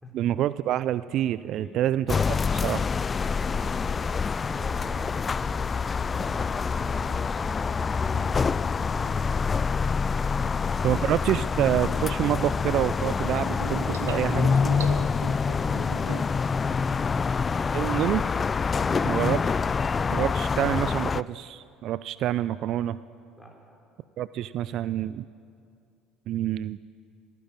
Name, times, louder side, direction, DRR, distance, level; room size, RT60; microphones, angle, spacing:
voice 1, 0.1-2.9 10.8-14.5 17.7-18.2 19.1-19.4 20.1-23.0 24.2-25.3 26.3-26.8, right 12 dB, 60° right, 17 dB, 0.3 m, -27 dB
sound 1, 2.1-21.2, left 5 dB, 30° left, 0.3 m, -26 dB
voice 2, 3.4-5.6 5.9-9.4 10.2-11.0 14.8-16.2 18.7-19.3 23.3-23.8 24.4-24.5, equal, 10° left, 0 dB, 4.2 m, -44 dB
sound 2, 7.7-7.8 10.2-10.3 11.7-12.5 13.1-16.5 16.9-17.4 18.0-18.5, right 7 dB, 90° right, 0.8 m, -40 dB
16.5 x 9.6 x 8.9 m, 2.4 s
hypercardioid pair, 70°, 0 cm